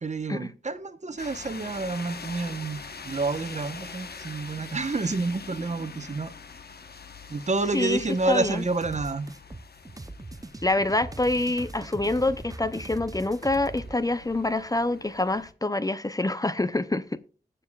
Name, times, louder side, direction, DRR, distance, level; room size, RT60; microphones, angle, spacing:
voice 1, 0.0-6.3 7.3-9.3, right 3 dB, 45° right, 0.9 m, -29 dB
sound 1, 1.2-15.5, left 5 dB, 85° left, 1.0 m, -44 dB
voice 2, 7.7-8.6 10.6-17.2, left 2 dB, 20° left, 0.6 m, -26 dB
sound 2, 8.8-14.0, right 2 dB, 20° right, 0.6 m, -41 dB
20.5 x 6.9 x 2.3 m
wide cardioid pair, 85°, 16 cm